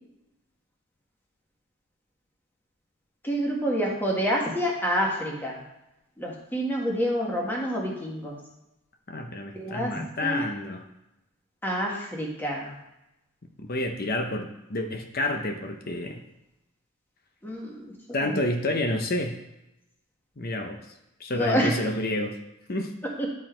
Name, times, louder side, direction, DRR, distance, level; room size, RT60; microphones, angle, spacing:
voice 1, 3.2-5.6 6.2-8.3 9.5-9.9 10.2-10.4 11.6-12.8 17.4-17.8 18.2-18.4 21.3-21.7 23.2-23.3, equal, 10° left, -2 dB, 1.5 m, -27 dB
voice 2, 9.1-10.8 13.6-16.2 18.1-19.4 20.4-20.8 21.2-22.3 22.7-22.9, left 1 dB, 45° left, 5 dB, 0.8 m, -29 dB
11.0 x 4.7 x 4.4 m, 0.90 s
head